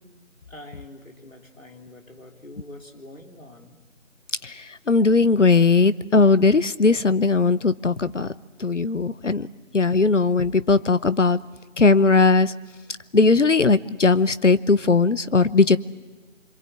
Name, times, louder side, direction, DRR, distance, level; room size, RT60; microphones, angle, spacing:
voice 1, 0.5-3.8, left 1 dB, 85° left, 2 dB, 3.5 m, -44 dB
voice 2, 4.4-8.3 8.6-9.5 9.7-11.4 11.8-12.5 13.1-15.8, left 4 dB, 65° left, 16 dB, 0.9 m, -18 dB
26.0 x 23.5 x 8.3 m, 1.2 s
figure-of-eight pair, 175°, 39 cm